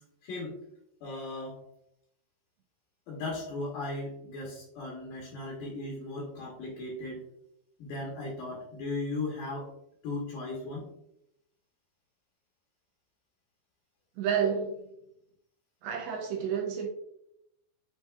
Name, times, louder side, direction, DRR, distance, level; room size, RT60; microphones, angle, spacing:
voice 1, 0.2-0.6 1.0-1.6 3.1-7.2 7.8-9.7 10.0-10.9, left 2 dB, 70° left, -3 dB, 2.2 m, -37 dB
voice 2, 14.2-14.8 15.8-16.9, right 7 dB, 85° right, 1 dB, 2.2 m, -30 dB
7.9 x 2.8 x 2.3 m, 0.79 s
omnidirectional pair, 4.8 m